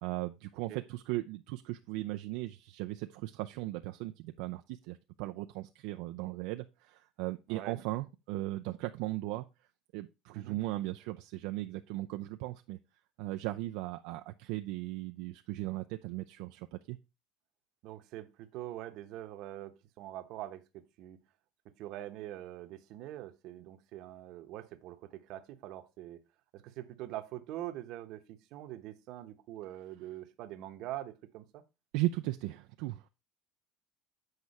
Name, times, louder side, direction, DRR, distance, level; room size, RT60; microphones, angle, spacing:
voice 1, 0.0-9.5 9.9-12.8 13.2-17.0 31.9-33.1, right 18 dB, 80° right, 0.4 m, -37 dB
voice 2, 17.8-21.2 21.8-26.2 26.5-31.6, right 14 dB, 65° right, 0.9 m, -44 dB
8.1 x 4.7 x 4.1 m
cardioid pair, 130°, 0 cm